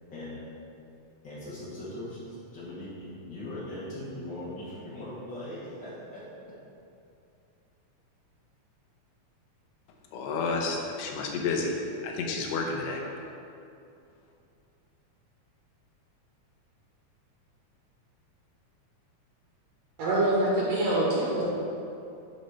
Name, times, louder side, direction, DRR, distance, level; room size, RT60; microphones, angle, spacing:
voice 1, 1.2-6.3 12.9-13.0 21.2-21.4, left 1 dB, 45° left, -9 dB, 1.8 m, -40 dB
voice 2, 10.1-11.8 12.0-13.0, left 4 dB, 70° left, 0 dB, 1.8 m, -30 dB
voice 3, 20.0-21.5, right 1 dB, 70° right, -5 dB, 2.2 m, -25 dB
9.8 x 4.2 x 4.2 m, 2.6 s
omnidirectional pair, 3.4 m